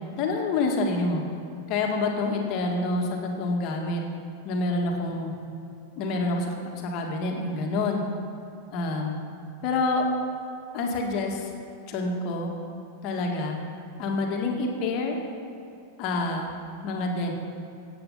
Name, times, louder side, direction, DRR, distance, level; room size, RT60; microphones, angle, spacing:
voice 1, 0.2-1.2 1.7-4.0 4.4-5.3 6.0-8.0 8.7-9.2 9.6-10.1 10.7-11.5 11.9-12.5 13.0-13.6 14.0-15.2 16.0-16.5 16.8-17.3, left 3 dB, 40° left, 1 dB, 1.9 m, -27 dB
14.5 x 8.7 x 5.7 m, 2.7 s
figure-of-eight pair, 90°, 0 cm